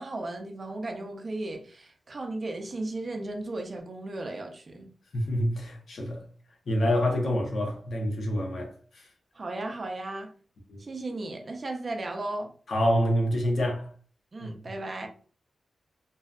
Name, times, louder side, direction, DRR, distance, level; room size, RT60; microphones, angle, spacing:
voice 1, 0.0-4.9 9.3-10.3 10.8-12.5 14.3-15.1, right 2 dB, 40° right, 0.5 m, -35 dB
voice 2, 5.1-6.2 6.7-9.1 10.7-10.8 12.7-13.9 14.4-14.5, equal, 65° left, 0.7 m, -27 dB
2.6 x 2.2 x 2.3 m
wide cardioid pair, 130°, 0 cm